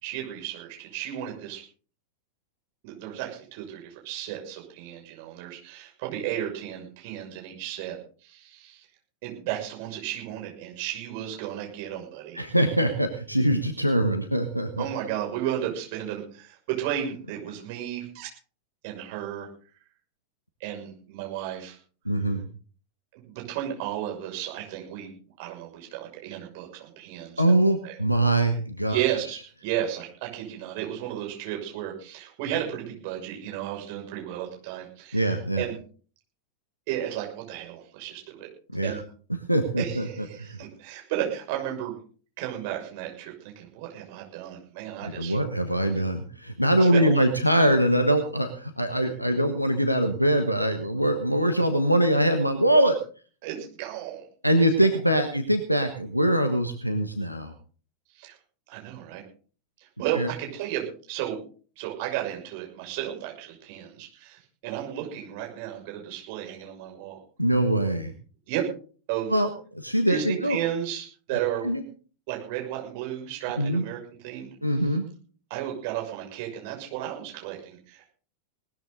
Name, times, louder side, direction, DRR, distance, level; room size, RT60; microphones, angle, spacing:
voice 1, 0.0-1.6 2.8-8.0 8.2-8.8 9.2-12.5 14.8-18.3 18.8-19.5 20.6-21.8 23.1-25.1 25.4-28.0 28.9-35.7 36.9-38.5 38.8-39.0 39.8-41.9 42.4-45.4 46.8-47.3 53.4-54.2 58.1-58.4 58.7-59.2 59.8-61.4 61.8-67.2 68.5-68.7 69.1-69.3 70.1-71.7 72.3-74.5 75.5-78.1, right 11 dB, 50° right, 1 dB, 6.5 m, -33 dB
voice 2, 12.3-14.8 22.0-22.5 27.4-29.0 35.1-35.6 38.7-39.0 39.5-40.6 45.0-53.0 54.4-57.5 60.1-60.3 67.4-68.1 69.3-70.6 71.6-71.8 73.6-73.8 74.6-75.0, right 1 dB, 90° right, 6 dB, 1.3 m, -23 dB
19.5 x 13.0 x 4.0 m, 0.41 s
figure-of-eight pair, 90°, 0 cm